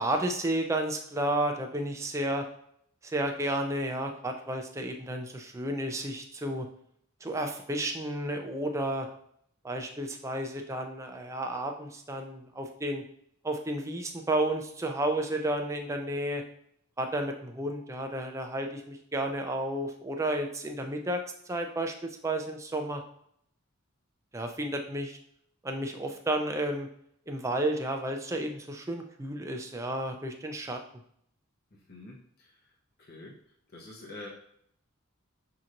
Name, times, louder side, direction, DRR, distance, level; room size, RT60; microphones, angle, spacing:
voice 1, 0.0-2.4 3.0-6.7 7.2-9.1 9.6-13.0 13.4-16.4 17.0-21.2 21.5-23.0 24.3-25.2 25.6-26.9 27.3-30.8, right 1 dB, 15° right, 4 dB, 0.4 m, -32 dB
voice 2, 31.7-33.4 33.7-34.3, left 2 dB, 50° left, -2 dB, 0.7 m, -47 dB
6.2 x 2.9 x 2.5 m, 0.69 s
head